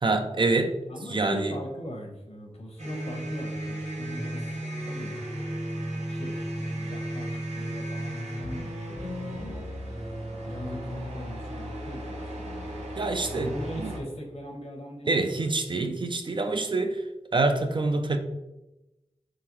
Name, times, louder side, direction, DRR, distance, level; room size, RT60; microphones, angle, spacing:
voice 1, 0.0-0.7 1.1-1.6 13.0-13.9 15.1-17.0 17.3-18.2, right 3 dB, 45° right, 6 dB, 0.4 m, -26 dB
voice 2, 0.9-4.6 4.8-5.2 6.1-10.2 10.4-12.9 13.3-15.5, equal, 65° left, 1 dB, 1.0 m, -40 dB
sound 1, 2.8-14.0, right 1 dB, 75° right, 0.9 m, -35 dB
3.9 x 3.2 x 3.0 m, 0.97 s
wide cardioid pair, 55°, 12 cm